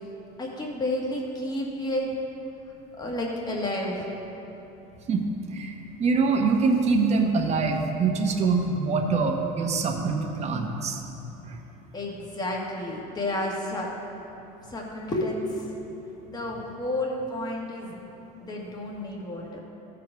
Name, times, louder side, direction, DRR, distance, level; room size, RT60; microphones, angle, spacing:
voice 1, 0.4-2.1 3.0-4.1 11.9-13.9 14.7-15.4 16.3-18.0 18.4-19.6, left 1 dB, 20° left, -2 dB, 1.6 m, -31 dB
voice 2, 6.0-11.0 11.5-11.6, right 4 dB, 35° right, 3 dB, 1.0 m, -24 dB
14.5 x 5.1 x 4.6 m, 3.0 s
cardioid pair, 125°, 19 cm